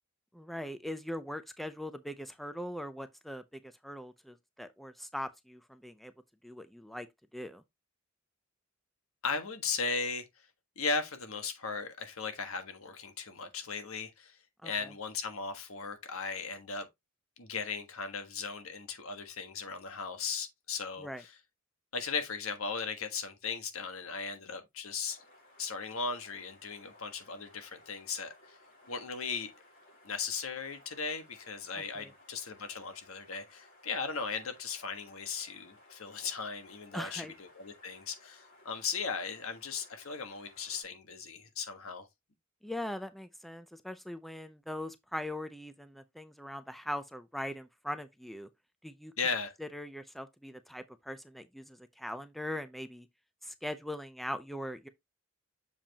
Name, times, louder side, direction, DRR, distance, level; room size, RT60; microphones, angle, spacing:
voice 1, 0.3-6.1 6.4-7.1 7.3-7.6 14.6-14.9 21.0-21.2 31.8-32.1 36.9-37.3 42.6-48.5 48.8-49.1 49.6-53.1 53.4-54.9, left 1 dB, ahead, 0.5 m, -41 dB
voice 2, 9.2-10.2 10.8-14.4 14.6-16.9 17.4-21.3 21.9-25.2 25.6-28.3 28.9-29.5 30.0-42.1 49.2-49.5, left 5 dB, 80° left, 1.4 m, -37 dB
sound 1, 25.0-40.8, left 2 dB, 60° left, 3.9 m, -60 dB
7.0 x 5.2 x 2.8 m
head